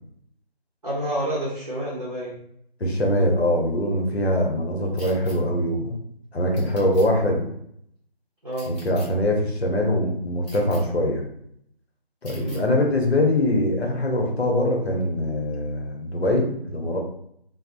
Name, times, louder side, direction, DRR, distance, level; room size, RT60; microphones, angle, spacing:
voice 1, 0.8-2.4 8.4-8.7 12.4-12.7, right 1 dB, 40° right, -6 dB, 0.6 m, -29 dB
voice 2, 2.8-6.0 6.3-7.4 8.7-11.2 12.2-17.0, left 1 dB, 80° left, 0 dB, 0.8 m, -23 dB
sound 1, 5.0-5.4 6.6-7.1 8.5-9.1 10.4-10.8 12.2-12.6, left 1 dB, 40° left, 1.2 m, -44 dB
2.6 x 2.0 x 2.5 m, 0.71 s
figure-of-eight pair, 170°, 31 cm